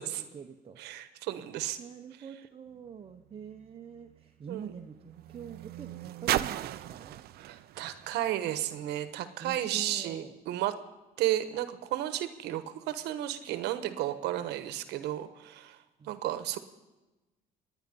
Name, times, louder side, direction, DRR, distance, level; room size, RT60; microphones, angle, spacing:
voice 1, 0.0-0.8 1.8-7.2 9.4-10.4 16.0-16.2, right 7 dB, 35° right, 4 dB, 0.9 m, -45 dB
voice 2, 0.8-1.8 4.5-4.7 7.4-10.7 11.2-16.6, right 13 dB, 85° right, 11 dB, 1.2 m, -33 dB
sound 1, 2.7-9.3 10.1-10.2, right 14 dB, 65° right, 0.6 m, -38 dB
26.5 x 10.0 x 5.3 m, 1.1 s
cardioid pair, 110°, 17 cm